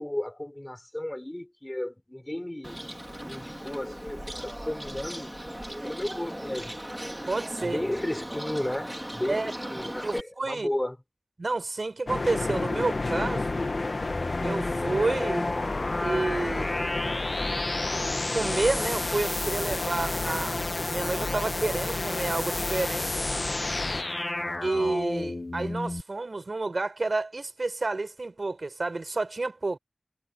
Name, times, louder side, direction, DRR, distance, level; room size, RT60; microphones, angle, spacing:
voice 1, 0.0-2.9 3.2-5.4 5.8-6.7 7.6-11.0, left 1 dB, 25° left, 6.5 m, -34 dB
Bird, 2.6-10.2, equal, 10° right, 3.0 m, -38 dB
voice 2, 7.3-7.8 9.3-9.5 10.0-10.7 11.4-13.6 14.4-15.5 16.0-17.0 18.3-20.6 20.9-23.3 24.6-29.8, right 3 dB, 85° right, 5.2 m, -30 dB
sound 1, 12.1-24.0, left 3 dB, 85° left, 2.1 m, -31 dB
sound 2, 14.1-26.0, left 2 dB, 50° left, 1.4 m, -33 dB
wide cardioid pair, 50°, 0 cm